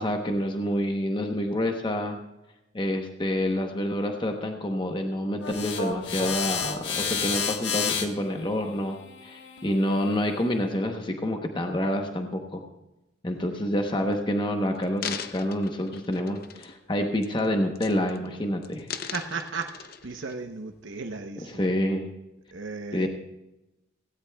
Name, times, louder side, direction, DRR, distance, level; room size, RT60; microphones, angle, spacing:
voice 1, 0.0-2.2 2.7-12.6 13.2-19.1 21.6-22.1 22.9-23.1, left 1 dB, 25° left, 4 dB, 0.9 m, -28 dB
sound 1, 5.4-10.6, left 6 dB, 70° left, 1.3 m, -31 dB
voice 2, 13.3-13.6 19.1-21.6 22.5-23.1, right 4 dB, 80° right, 4 dB, 0.8 m, -36 dB
sound 2, 13.8-14.1 14.7-16.9 17.2-17.5 17.8-18.3 18.6-20.3 20.9-21.0, left 7 dB, 50° left, 0.7 m, -39 dB
17.0 x 16.5 x 2.3 m, 0.98 s
head